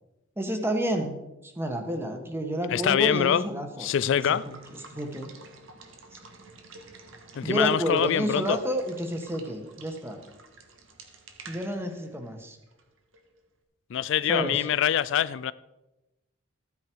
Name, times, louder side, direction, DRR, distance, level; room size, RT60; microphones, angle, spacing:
voice 1, 0.4-1.2 1.4-3.9 4.2-4.5 4.9-5.3 6.1-6.2 7.4-10.2 11.4-12.6 14.3-14.6, equal, 10° right, 1.4 m, -30 dB
voice 2, 2.7-3.4 3.8-4.4 7.3-8.6 13.9-15.5, left 9 dB, 65° left, 0.3 m, -24 dB
Water / Water tap faucet / Liquid, 3.8-13.4, right 3 dB, 70° right, 1.7 m, -50 dB
14.0 x 9.7 x 4.6 m
head